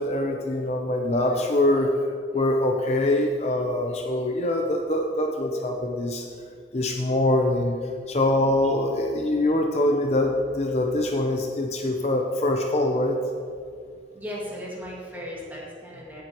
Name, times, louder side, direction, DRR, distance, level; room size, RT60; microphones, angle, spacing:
voice 1, 0.0-1.9 2.3-6.2 6.7-7.8 8.1-13.2, left 1 dB, 40° left, 2 dB, 0.6 m, -24 dB
voice 2, 14.1-16.2, equal, 10° right, -5 dB, 2.2 m, -36 dB
17.5 x 7.7 x 3.0 m, 2.3 s
head